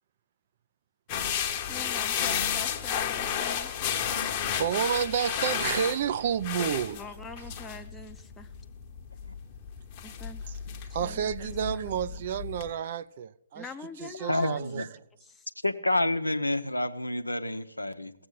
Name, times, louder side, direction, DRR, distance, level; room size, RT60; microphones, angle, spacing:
sound 1, 1.1-12.7, left 8 dB, 25° left, 1.0 m, -33 dB
voice 1, 1.7-3.7 6.9-8.5 10.0-10.4 11.0-11.9 13.5-14.6 15.2-15.5, left 4 dB, 5° left, 0.7 m, -44 dB
voice 2, 3.8-4.3 4.6-7.0 10.9-13.7 14.0-14.9, right 8 dB, 40° right, 0.5 m, -30 dB
voice 3, 14.3-14.9 15.6-18.1, left 1 dB, 85° left, 0.8 m, -28 dB
16.0 x 7.8 x 8.2 m
figure-of-eight pair, 130°, 0 cm